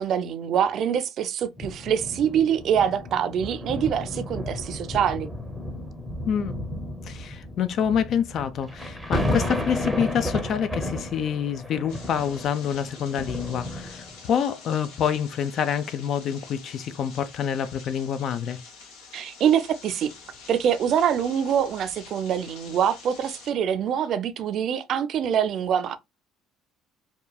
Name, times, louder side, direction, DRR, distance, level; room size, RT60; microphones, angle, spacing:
voice 1, 0.0-5.3 19.1-20.1 20.5-26.0, right 8 dB, 55° right, 0.4 m, -24 dB
sound 1, 1.6-14.4 15.0-15.2, left 1 dB, 5° right, 0.7 m, -33 dB
voice 2, 7.1-18.6, left 8 dB, 55° left, 0.4 m, -27 dB
sound 2, 11.9-23.5, left 5 dB, 85° left, 0.9 m, -47 dB
2.9 x 2.3 x 2.2 m
cardioid pair, 110°, 0 cm